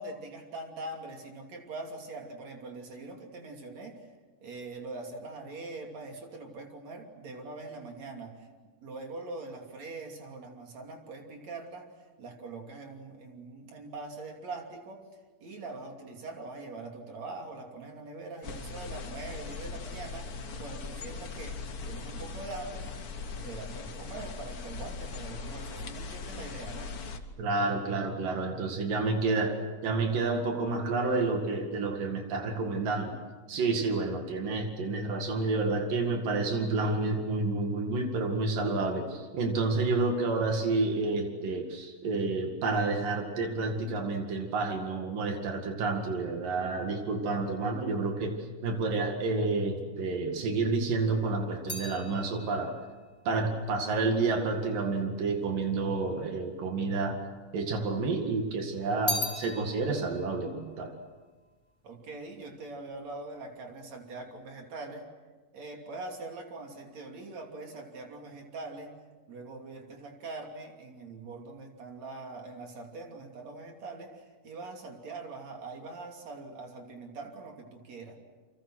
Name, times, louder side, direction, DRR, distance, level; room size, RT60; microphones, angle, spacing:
voice 1, 0.0-4.1 4.4-8.5 8.8-11.9 12.2-15.1 15.4-23.0 23.4-26.9 61.8-65.1 65.5-69.0 69.3-78.2, right 3 dB, 55° right, 2 dB, 4.0 m, -43 dB
sound 1, 18.4-27.2, left 4 dB, 75° left, 0.8 m, -40 dB
voice 2, 27.4-33.2 33.5-48.3 48.6-52.7 53.3-57.2 57.5-61.0, right 3 dB, 80° right, 3 dB, 3.8 m, -29 dB
sound 2, 50.7-55.1 55.9-56.7 57.0-58.1 58.5-62.0 62.3-62.8, left 2 dB, 15° left, 5.0 m, -40 dB
29.5 x 25.5 x 6.3 m, 1.3 s
omnidirectional pair, 3.8 m